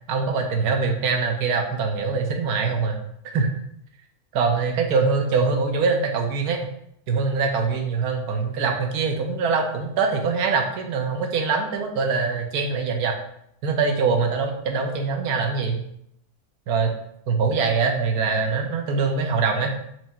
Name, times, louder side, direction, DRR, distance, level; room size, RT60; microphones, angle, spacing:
voice 1, 0.1-3.0 3.2-3.5 4.3-6.6 7.1-13.1 13.6-15.8 16.7-16.9 17.3-19.7, right 4 dB, 85° right, 3 dB, 1.2 m, -23 dB
4.7 x 2.7 x 4.2 m, 0.73 s
omnidirectional pair, 1.6 m